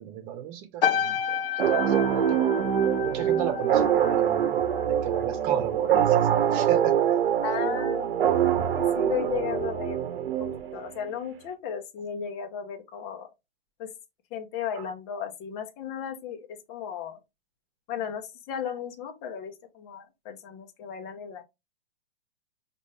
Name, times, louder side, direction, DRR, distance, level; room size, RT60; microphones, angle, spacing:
voice 1, 0.0-1.4 1.7-2.4 3.0-6.9, right 10 dB, 35° right, 1.1 m, -34 dB
sound 1, 0.8-5.4 5.7-6.1, left 8 dB, 65° left, 0.6 m, -31 dB
sound 2, 1.6-11.0, right 9 dB, 80° right, 0.8 m, -24 dB
voice 2, 7.4-10.0 10.4-13.3 13.8-13.9 14.3-17.2 17.9-21.4, left 8 dB, 35° left, 1.0 m, -35 dB
5.1 x 2.6 x 3.2 m
hypercardioid pair, 135°, 29 cm